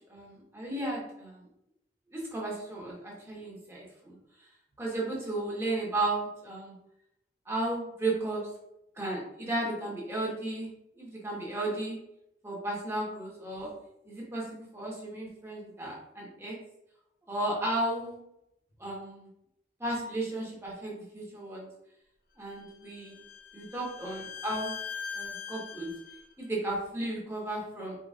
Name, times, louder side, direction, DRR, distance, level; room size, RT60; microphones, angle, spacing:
voice 1, 0.1-1.4 2.1-4.2 4.8-6.7 7.5-8.4 9.0-10.7 11.0-12.0 12.4-13.7 14.0-16.5 17.3-18.2 18.8-19.3 19.8-21.7 22.4-23.2 23.5-24.7 25.1-25.9 26.4-28.0, right 2 dB, 15° right, -4 dB, 1.2 m, -34 dB
Bowed string instrument, 22.5-26.3, left 6 dB, 55° left, 0.7 m, -41 dB
4.5 x 4.0 x 2.4 m, 0.83 s
head